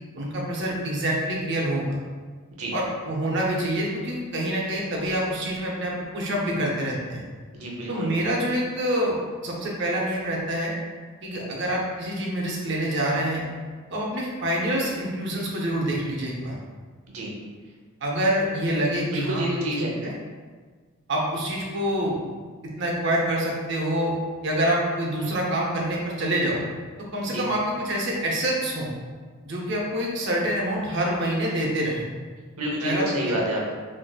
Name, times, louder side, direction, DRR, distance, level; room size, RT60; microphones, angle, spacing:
voice 1, 0.1-1.8 2.7-7.2 7.9-10.7 11.2-13.4 13.9-16.6 18.0-19.5 19.8-20.1 21.1-22.2 22.8-24.1 24.4-26.6 27.1-28.9 29.4-32.1 32.8-33.3, right 1 dB, 55° right, -3 dB, 0.7 m, -26 dB
voice 2, 7.5-8.1 17.1-17.3 19.1-19.9 27.2-27.5 32.6-33.6, right 1 dB, 90° right, -2 dB, 0.8 m, -28 dB
3.9 x 2.6 x 2.3 m, 1.5 s
head